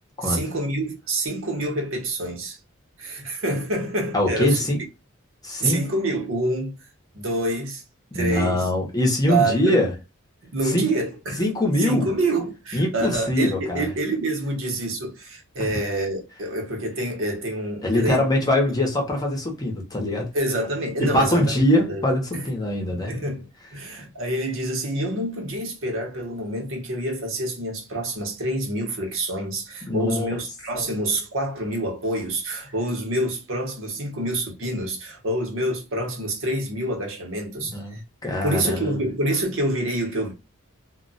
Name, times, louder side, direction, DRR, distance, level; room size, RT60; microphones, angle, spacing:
voice 1, 0.2-2.6 3.0-4.6 5.6-6.7 7.1-7.8 8.1-8.6 9.3-9.8 10.5-11.4 11.8-18.3 20.3-22.0 22.3-22.5 23.1-38.0 38.4-40.3, right 1 dB, 65° right, 0.9 m, -27 dB
voice 2, 4.1-4.8 5.4-5.8 8.1-9.9 10.6-10.9 11.4-12.1 12.7-13.9 15.6-15.8 17.8-20.3 21.0-23.2 29.9-30.4 37.6-39.0, left 1 dB, 20° left, 0.8 m, -23 dB
2.2 x 2.2 x 3.9 m
head